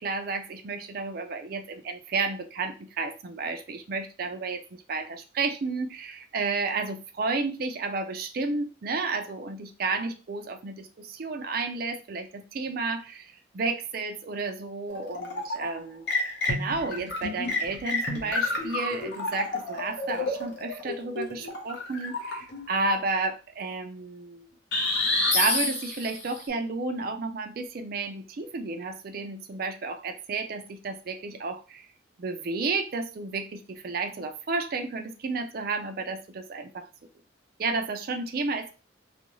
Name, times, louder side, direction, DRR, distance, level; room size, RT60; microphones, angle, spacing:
voice 1, 0.0-4.6 4.9-16.1 16.5-24.5 25.3-31.9 32.2-36.9 37.6-38.7, right 3 dB, 50° right, 7 dB, 0.4 m, -32 dB
sound 1, 14.9-15.7 16.1-22.7 24.7-26.3, left 2 dB, 65° left, 0.7 m, -29 dB
2.5 x 2.2 x 3.0 m, 0.32 s
head